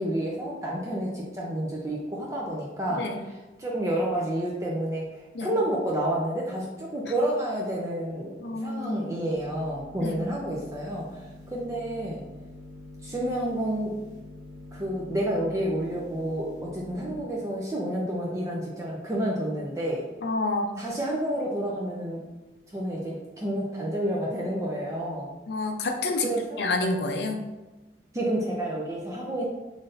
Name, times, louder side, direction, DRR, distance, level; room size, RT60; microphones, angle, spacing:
voice 1, 0.0-3.1 3.6-11.1 11.5-12.2 13.0-13.9 14.7-20.0 20.8-22.3 22.7-25.3 26.2-26.6 28.1-29.4, right 1 dB, 15° right, -3 dB, 0.5 m, -29 dB
voice 2, 8.4-9.1 10.0-10.2 20.2-20.7 25.5-26.3 26.6-27.4, left 2 dB, 70° left, 4 dB, 0.5 m, -28 dB
sound 1, 9.3-17.2, left 2 dB, 90° right, 1.5 m, -45 dB
3.9 x 3.2 x 2.6 m, 1.1 s
head